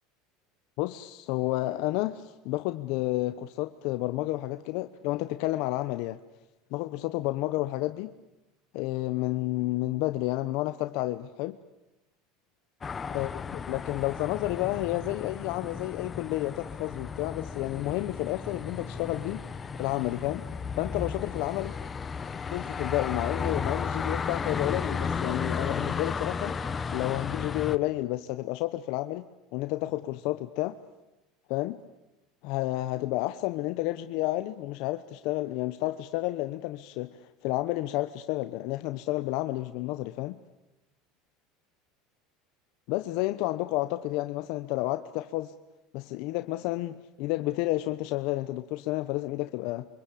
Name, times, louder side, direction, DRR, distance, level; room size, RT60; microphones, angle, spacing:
voice 1, 0.8-6.2 6.7-8.1 8.7-11.6 13.1-19.4 19.8-20.4 20.8-21.8 22.5-26.6 26.9-29.3 29.5-30.8 31.5-31.8 32.4-40.4 42.9-45.5 45.9-49.9, left 17 dB, 65° left, 1.0 m, -31 dB
sound 1, 12.8-27.8, left 5 dB, 20° left, 1.1 m, -34 dB
28.0 x 24.5 x 8.6 m
supercardioid pair, 130°, 0 cm